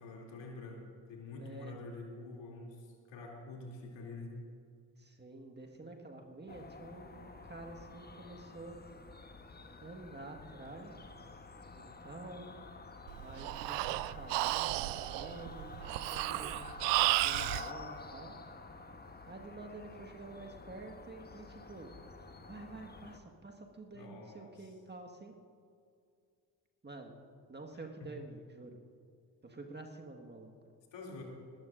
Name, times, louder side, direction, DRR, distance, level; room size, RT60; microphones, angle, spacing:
voice 1, 0.0-4.4 23.9-24.5 28.0-28.1 30.9-31.2, left 2 dB, 60° left, -1 dB, 3.1 m, -47 dB
voice 2, 1.4-1.8 5.0-8.8 9.8-11.0 11.7-12.5 13.2-16.5 17.2-18.3 19.2-21.9 22.5-25.3 26.8-27.2 27.5-28.8 29.4-30.5, right 2 dB, 20° right, 2 dB, 1.7 m, -49 dB
sound 1, 6.5-23.2, left 3 dB, 20° left, 1.2 m, -49 dB
Breathing, 13.1-17.7, right 18 dB, 60° right, 0.5 m, -33 dB
20.0 x 17.0 x 2.6 m, 2.2 s
figure-of-eight pair, 40°, 49 cm